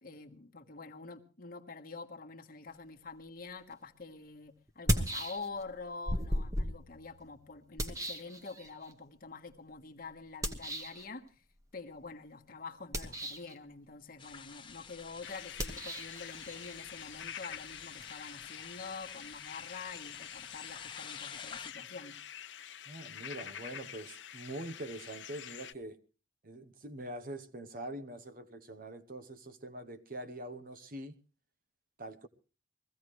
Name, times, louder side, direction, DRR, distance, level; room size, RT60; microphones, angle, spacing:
voice 1, 0.0-11.3 11.7-22.2, left 4 dB, 50° left, 1.4 m, -46 dB
sound 1, 3.7-3.8 4.7-5.7 6.1-8.9 10.4-11.0 12.8-13.6 15.5-18.1, equal, 15° right, 1.2 m, -36 dB
sound 2, 14.2-21.7, left 6 dB, 25° left, 1.1 m, -50 dB
sound 3, 15.2-25.7, left 9 dB, 65° left, 0.7 m, -47 dB
voice 2, 22.9-26.0 26.4-31.2 32.0-32.3, right 1 dB, 45° right, 1.0 m, -44 dB
22.0 x 15.5 x 3.2 m
head